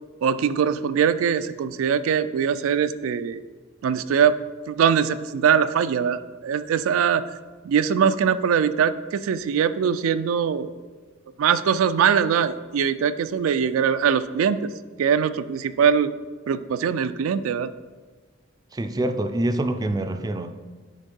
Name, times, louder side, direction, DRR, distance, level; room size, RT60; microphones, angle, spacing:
voice 1, 0.2-3.4 3.8-4.4 4.7-7.2 7.6-10.7 11.4-14.7 15.0-16.1 16.5-17.7, right 7 dB, 85° right, 12 dB, 0.3 m, -22 dB
voice 2, 18.7-20.5, right 1 dB, 20° right, 7 dB, 0.4 m, -25 dB
9.1 x 3.6 x 5.4 m, 1.4 s
head